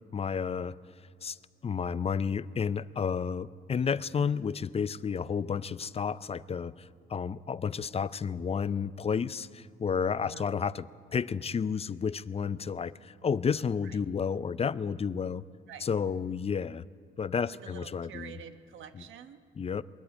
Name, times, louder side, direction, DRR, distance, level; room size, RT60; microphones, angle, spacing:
voice 1, 0.1-0.8 1.2-1.4 1.6-10.9 11.1-15.4 15.8-16.8 17.2-18.3 19.0-19.1 19.6-19.8, left 6 dB, 30° left, 17 dB, 0.5 m, -31 dB
voice 2, 17.5-19.4, right 8 dB, 80° right, 9 dB, 1.3 m, -47 dB
22.0 x 13.5 x 9.3 m, 2.2 s
cardioid pair, 90°, 20 cm